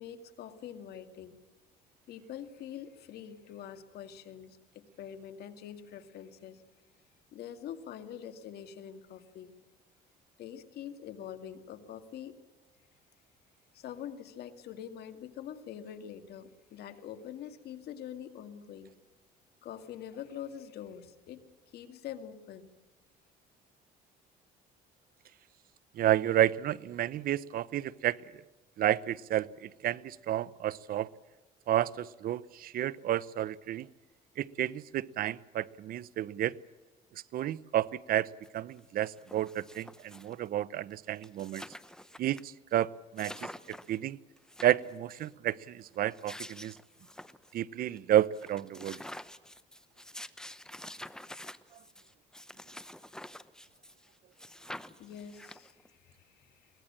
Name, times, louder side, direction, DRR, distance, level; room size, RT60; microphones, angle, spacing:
voice 1, 0.0-1.4 2.1-6.6 7.3-9.6 10.4-12.4 13.7-18.9 19.6-22.7 55.0-56.7, left 9 dB, 70° left, 8 dB, 2.1 m, -45 dB
voice 2, 25.9-28.2 28.8-31.1 31.7-33.9 34.4-36.5 37.3-38.3 38.5-41.6 42.2-44.2 44.6-46.8 47.5-49.0, right 12 dB, 60° right, 19 dB, 0.7 m, -31 dB
sound 1, 38.4-38.5 38.8-40.5 40.9-41.0 41.2-42.4 42.7-42.8 43.2-44.0 44.4-45.3 45.9-47.6 48.0-48.1 48.3-54.1 54.4-55.9, left 1 dB, 5° left, 0.9 m, -47 dB
23.0 x 18.5 x 8.7 m, 1.2 s
cardioid pair, 110°, 17 cm